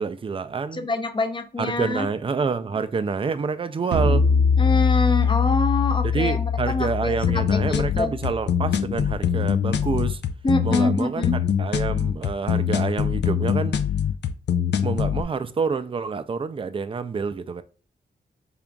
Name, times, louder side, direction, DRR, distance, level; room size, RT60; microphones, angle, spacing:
voice 1, 0.0-0.9 1.6-4.3 6.0-10.2 10.6-11.2 11.6-13.8 14.8-17.6, right 5 dB, 30° right, 0.4 m, -27 dB
voice 2, 0.7-2.1 4.6-8.1 10.4-11.4, left 2 dB, 30° left, 0.6 m, -25 dB
sound 1, 3.9-9.3, left 5 dB, 80° right, 0.6 m, -23 dB
sound 2, 7.2-15.2, left 8 dB, 80° left, 0.4 m, -23 dB
3.8 x 3.4 x 2.3 m
wide cardioid pair, 90°, 18 cm